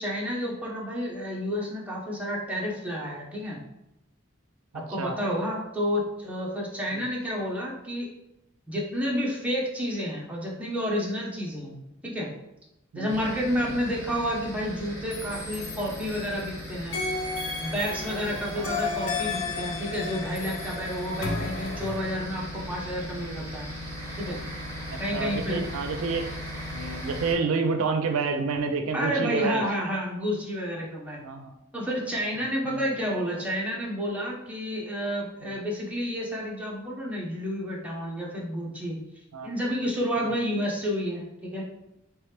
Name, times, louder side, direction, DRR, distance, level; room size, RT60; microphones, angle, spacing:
voice 1, 0.0-3.6 4.7-8.1 8.7-11.7 12.0-12.3 13.0-17.0 17.6-23.7 24.2-24.4 25.0-25.6 28.9-31.2 31.7-39.0 39.4-41.6, equal, 5° right, -4 dB, 0.8 m, -30 dB
voice 2, 4.7-5.2 6.9-7.0 11.7-11.8 12.9-13.2 13.6-13.8 18.5-18.7 21.2-21.4 24.9-26.3 26.7-29.6 31.2-31.5 32.6-32.9 35.4-35.5 39.3-39.5 40.2-40.3, right 4 dB, 90° right, 7 dB, 0.4 m, -29 dB
sound 1, 13.1-27.3, equal, 15° left, 1.0 m, -38 dB
sound 2, 15.1-16.5 16.9-22.0, left 4 dB, 75° left, 0.7 m, -33 dB
3.2 x 3.1 x 3.3 m, 0.89 s
head